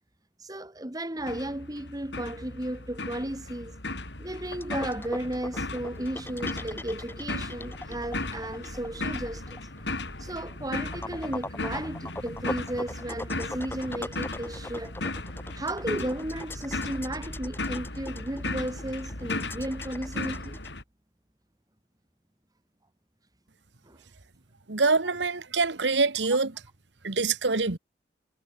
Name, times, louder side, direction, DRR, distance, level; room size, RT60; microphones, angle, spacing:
voice 1, 0.4-3.8 4.2-9.6 9.9-15.0 15.5-20.6 23.9-24.0, right 1 dB, 20° right, 1.8 m, -34 dB
sound 1, 1.2-20.8, left 2 dB, 80° left, 6.0 m, -36 dB
sound 2, 4.6-20.7, left 1 dB, 15° left, 5.4 m, -40 dB
voice 2, 24.7-26.5 27.0-27.8, right 4 dB, 85° right, 1.6 m, -25 dB
head